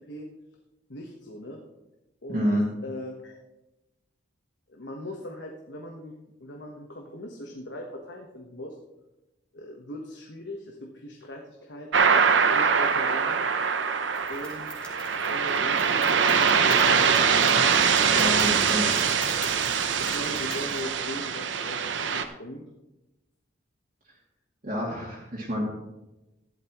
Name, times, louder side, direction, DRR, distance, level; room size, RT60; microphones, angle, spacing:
voice 1, 0.9-1.6 2.2-2.5 2.8-3.4 4.7-6.1 6.4-8.8 9.5-12.2 12.5-13.4 14.3-14.9 15.2-17.6 18.1-18.3 20.0-22.7, left 1 dB, 70° left, 1 dB, 1.3 m, -40 dB
voice 2, 2.3-2.6 18.2-18.8 24.6-25.6, equal, 45° right, -6 dB, 2.5 m, -28 dB
sound 1, 11.9-22.2, right 6 dB, 85° right, 0.8 m, -23 dB
sound 2, 14.1-20.8, left 1 dB, 5° left, 2.3 m, -43 dB
15.0 x 11.5 x 3.1 m, 0.99 s
head